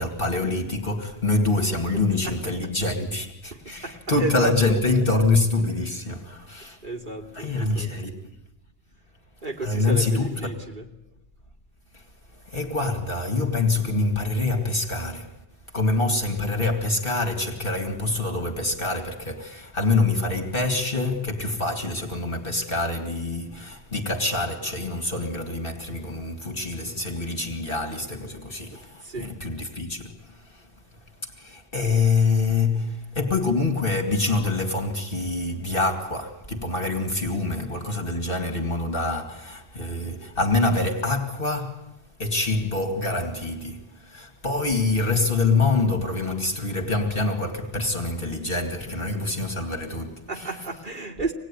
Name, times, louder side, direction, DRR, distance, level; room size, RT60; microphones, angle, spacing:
voice 1, 0.0-6.8 7.3-8.3 9.6-10.5 12.5-15.3 15.7-30.1 30.5-30.6 31.4-41.9 42.2-50.6, left 3 dB, 55° left, 2.5 m, -25 dB
voice 2, 1.9-2.4 3.5-4.5 6.8-7.9 9.4-10.9 29.0-29.4 50.3-51.3, right 3 dB, 50° right, 3.0 m, -33 dB
26.0 x 19.5 x 9.9 m
omnidirectional pair, 1.1 m